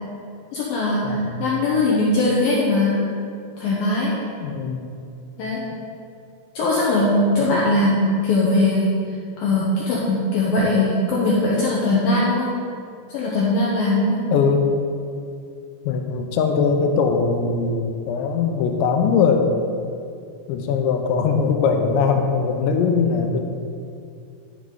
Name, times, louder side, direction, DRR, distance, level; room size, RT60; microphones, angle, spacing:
voice 1, 0.5-3.0 3.6-4.1 5.4-5.6 6.6-8.9 9.4-12.5 13.1-14.2, left 2 dB, 70° left, -5 dB, 2.4 m, -20 dB
voice 2, 1.0-1.5 4.4-4.9 7.5-7.8 14.3-14.7 15.9-19.5 20.5-23.4, left 5 dB, 85° left, 4 dB, 3.1 m, -21 dB
11.5 x 5.0 x 5.2 m, 2.4 s
omnidirectional pair, 5.1 m